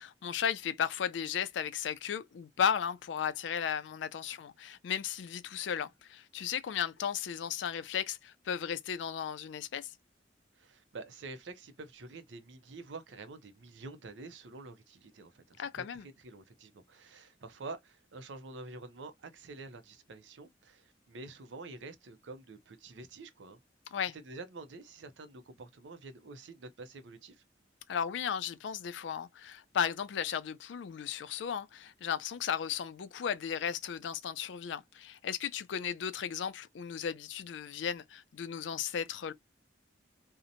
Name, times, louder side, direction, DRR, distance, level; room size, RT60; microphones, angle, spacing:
voice 1, 0.0-9.9 15.6-16.1 23.9-24.2 27.9-39.3, left 8 dB, 80° left, 0.4 m, -35 dB
voice 2, 10.5-23.6 24.1-27.4, right 3 dB, 80° right, 0.5 m, -48 dB
2.7 x 2.1 x 2.5 m
head